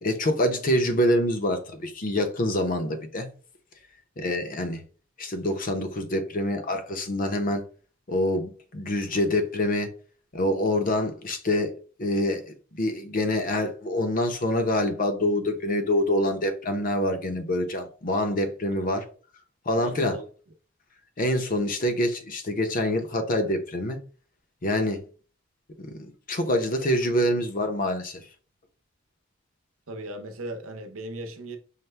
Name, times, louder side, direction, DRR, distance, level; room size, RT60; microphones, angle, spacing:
voice 1, 0.0-3.3 4.2-4.8 5.2-7.6 8.1-9.9 10.3-19.1 19.7-20.2 21.2-24.0 24.6-25.0 25.8-28.2, left 1 dB, 45° left, 0.7 m, -26 dB
voice 2, 19.8-20.2 29.9-31.6, right 1 dB, 85° right, 0.8 m, -37 dB
5.7 x 2.1 x 3.3 m
head